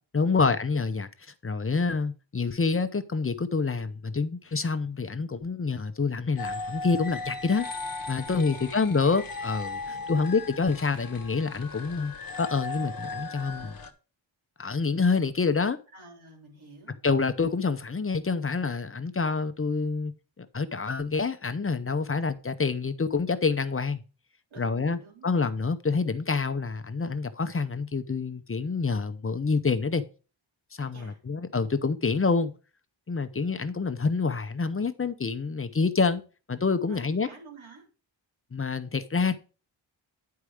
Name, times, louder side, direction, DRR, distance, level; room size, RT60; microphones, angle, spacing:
voice 1, 0.1-1.1 1.4-7.7 8.1-9.8 10.1-13.8 14.6-15.8 17.0-20.1 20.4-24.0 24.6-30.0 30.8-32.5 33.1-36.2 36.5-37.3 38.5-39.3, left 4 dB, 30° left, 0.7 m, -27 dB
sound 1, 6.4-13.9, left 3 dB, 45° left, 1.0 m, -37 dB
voice 2, 8.2-8.8 9.9-10.3 15.9-17.0 24.5-25.3 30.9-31.2 36.9-37.9, right 3 dB, 85° right, 3.6 m, -50 dB
10.0 x 4.7 x 4.9 m
wide cardioid pair, 145°, 47 cm